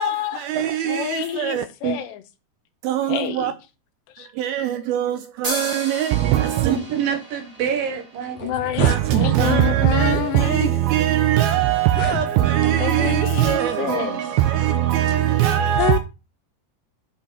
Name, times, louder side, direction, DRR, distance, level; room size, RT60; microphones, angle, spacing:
voice 1, 0.0-0.4 0.8-2.2 3.1-3.5 4.2-4.3 8.4-10.7 12.8-14.3 15.8-16.0, left 12 dB, 85° left, 3.1 m, -27 dB
voice 2, 0.5-1.0 1.4-1.6 2.9-3.5 4.4-5.2 5.4-6.8 8.8-14.0 14.4-16.0, right 12 dB, 80° right, 2.3 m, -20 dB
sound 1, 5.4-9.0, right 1 dB, 30° right, 0.7 m, -34 dB
voice 3, 6.7-8.5 13.9-14.1, right 7 dB, 65° right, 2.9 m, -26 dB
sound 2, 7.9-8.0 8.3-9.0 9.9-10.1 10.8-10.9 11.8-12.7, left 6 dB, 65° left, 2.2 m, -31 dB
9.2 x 5.4 x 5.6 m
omnidirectional pair, 4.8 m